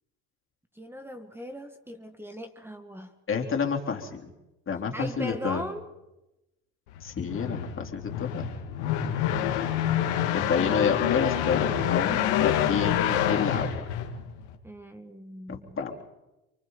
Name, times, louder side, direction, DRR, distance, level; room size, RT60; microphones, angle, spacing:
voice 1, 0.7-3.1 4.9-5.9 9.7-10.1 14.6-15.8, equal, 5° right, 6 dB, 1.7 m, -39 dB
voice 2, 3.3-4.3 4.7-5.6 7.0-8.5 10.3-13.9 15.5-16.0, left 6 dB, 40° left, 1 dB, 3.6 m, -29 dB
sound 1, 6.9-14.5, left 10 dB, 90° left, 2.2 m, -27 dB
29.5 x 24.0 x 4.1 m, 0.99 s
supercardioid pair, 75°, 33 cm